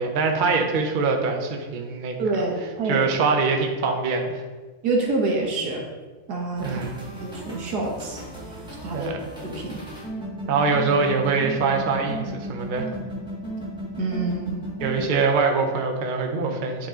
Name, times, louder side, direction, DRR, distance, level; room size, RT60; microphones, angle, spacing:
voice 1, 0.0-2.5 2.8-4.4 6.6-7.2 8.9-9.2 10.5-12.9 14.8-16.9, right 4 dB, 45° right, 3 dB, 0.7 m, -24 dB
voice 2, 2.2-3.0 4.8-5.8 6.3-6.8 7.2-8.2 8.8-9.1 9.4-9.8 14.0-14.5, right 3 dB, 90° right, 0 dB, 1.8 m, -26 dB
sound 1, 6.6-15.0, right 1 dB, 5° right, 1.5 m, -35 dB
8.7 x 4.1 x 3.8 m, 1.3 s
omnidirectional pair, 1.6 m